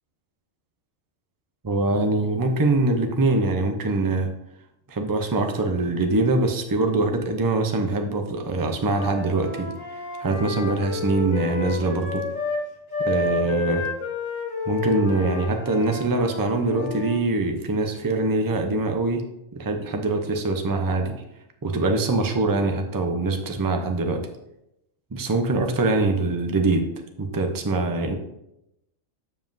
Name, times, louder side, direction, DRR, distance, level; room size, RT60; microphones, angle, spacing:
voice 1, 1.6-4.3 4.9-9.7 10.2-12.2 13.0-13.9 14.7-19.2 19.5-21.1 21.6-24.2 25.1-26.8 27.2-28.1, right 2 dB, 30° right, 4 dB, 0.4 m, -23 dB
Wind instrument woodwind instrument, 8.7-12.6 12.9-17.2, left 3 dB, 70° left, 1.8 m, -30 dB
7.3 x 7.3 x 2.6 m, 0.86 s
omnidirectional pair, 1.4 m